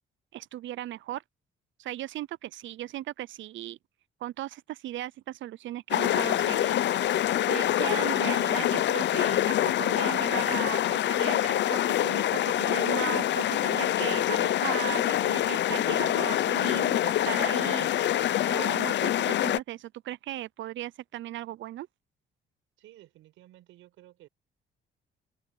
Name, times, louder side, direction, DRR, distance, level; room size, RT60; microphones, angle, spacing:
voice 1, 0.3-1.2 1.8-3.8 4.2-6.8 7.5-17.9 18.5-21.9, right 14 dB, 75° right, 0.5 m, -37 dB
sound 1, 5.9-19.6, left 12 dB, 65° left, 0.7 m, -26 dB
voice 2, 22.8-24.3, right 14 dB, 90° right, 5.5 m, -54 dB
cardioid pair, 90°, 20 cm